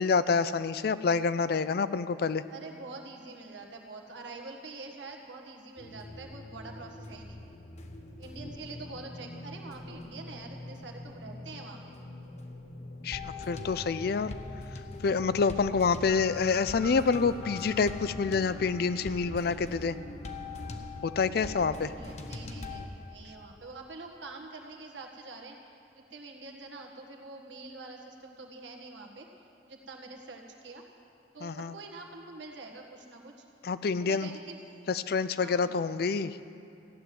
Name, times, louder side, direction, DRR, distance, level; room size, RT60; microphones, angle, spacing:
voice 1, 0.0-2.4 13.0-14.3 15.0-20.0 21.0-21.9 31.4-31.7 33.6-34.3 34.9-36.4, left 5 dB, 55° left, 14 dB, 0.4 m, -27 dB
voice 2, 2.5-7.4 8.2-12.0 21.4-29.3 29.7-30.8 31.3-33.5 34.0-34.6 35.4-35.7, right 3 dB, 90° right, 2 dB, 1.7 m, -46 dB
sound 1, 5.8-22.9, left 2 dB, 40° left, 0.9 m, -42 dB
15.5 x 7.6 x 9.4 m, 2.7 s
head